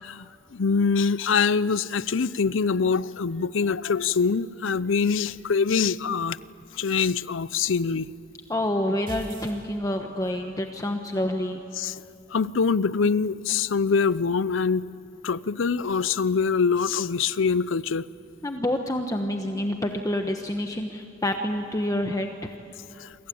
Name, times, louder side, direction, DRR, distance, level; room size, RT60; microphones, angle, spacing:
voice 1, 0.0-6.4 6.7-8.1 11.8-12.0 12.3-14.9 15.2-18.1 23.0-23.1, left 5 dB, 65° left, 18 dB, 0.6 m, -24 dB
voice 2, 8.5-11.6 18.4-22.5, left 1 dB, 15° left, 4 dB, 1.1 m, -28 dB
sound 1, 9.1-10.3, right 1 dB, 25° right, 3.0 m, -41 dB
28.0 x 24.5 x 8.6 m, 2.7 s
head